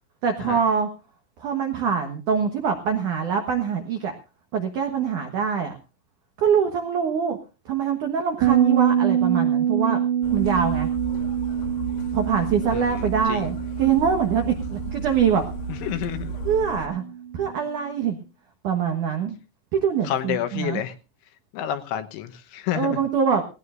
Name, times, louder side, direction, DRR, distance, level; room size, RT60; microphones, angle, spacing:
voice 1, 0.2-0.9 1.4-4.1 4.5-5.7 6.4-7.4 7.7-10.0 10.3-10.9 12.1-15.4 16.5-17.0 17.3-18.2 18.6-19.4 19.7-20.8 22.7-23.4, right 7 dB, 75° right, 5 dB, 1.8 m, -24 dB
Bass guitar, 8.4-17.8, right 9 dB, 55° right, 3.4 m, -26 dB
sound 1, 10.2-16.9, right 2 dB, 60° left, 2.6 m, -34 dB
voice 2, 12.7-13.5 15.7-16.4 20.0-21.0 21.5-23.0, left 11 dB, 75° left, 8 dB, 3.3 m, -29 dB
18.5 x 18.0 x 2.5 m, 0.32 s
omnidirectional pair, 5.8 m